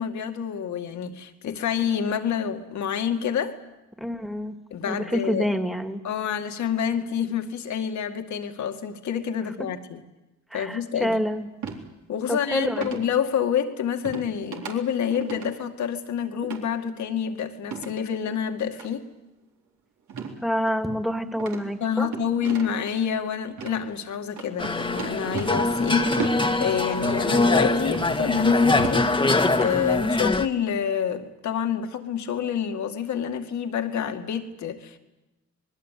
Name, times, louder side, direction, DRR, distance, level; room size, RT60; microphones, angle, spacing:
voice 1, 0.0-3.6 4.7-5.5 6.0-10.0 10.5-11.2 12.1-19.1 21.8-26.3 26.6-29.2 29.6-35.0, left 8 dB, 70° left, 6 dB, 2.3 m, -28 dB
voice 2, 4.0-4.6 4.9-6.0 10.5-11.5 12.3-13.0 20.4-22.1 30.0-30.4, equal, ahead, 6 dB, 2.3 m, -27 dB
sound 1, 11.6-11.8 12.8-13.1 14.1-14.3 14.5-14.7 15.1-15.5 16.4-16.6 17.6-18.0 18.7-18.9 20.1-20.4 20.7-20.8 21.4-22.9 23.5-23.8 24.4-25.7 26.1-26.4 27.0-27.2 27.9-28.1 28.5-29.0 29.4-29.9, right 6 dB, 70° right, 3.9 m, -35 dB
sound 2, 24.6-30.5, left 2 dB, 15° left, 1.6 m, -23 dB
26.0 x 20.5 x 8.5 m, 1.0 s
cardioid pair, 90°, 30 cm